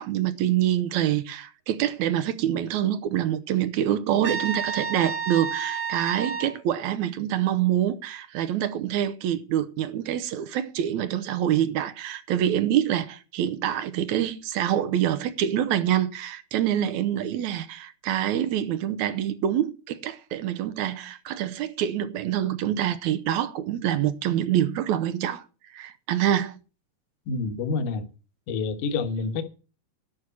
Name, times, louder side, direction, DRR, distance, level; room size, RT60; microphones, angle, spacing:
voice 1, 0.0-26.6, right 11 dB, 75° right, 1.9 m, -26 dB
Trumpet, 4.2-6.5, right 6 dB, 55° right, 1.4 m, -30 dB
voice 2, 27.3-28.1 28.5-29.4, left 4 dB, 65° left, 2.4 m, -28 dB
11.5 x 6.2 x 8.5 m
omnidirectional pair, 4.2 m